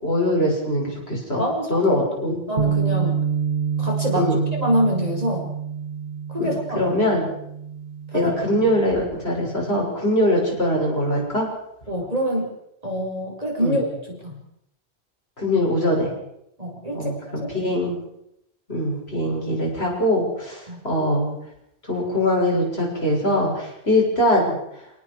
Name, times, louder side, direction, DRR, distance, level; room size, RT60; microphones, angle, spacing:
voice 1, 0.0-2.4 4.1-4.4 6.4-7.2 8.1-11.5 13.6-13.8 15.4-16.1 16.9-18.0 18.7-21.3 21.9-24.6, left 1 dB, 75° left, -2 dB, 7.2 m, -22 dB
voice 2, 1.4-3.2 3.8-5.5 6.3-6.8 8.1-8.3 11.9-12.5 12.8-14.4 16.6-17.5 20.7-20.8, equal, 35° right, 0 dB, 5.4 m, -26 dB
Bass guitar, 2.6-8.8, right 7 dB, 50° right, 2.2 m, -27 dB
29.5 x 18.5 x 4.8 m, 0.78 s
omnidirectional pair, 1.1 m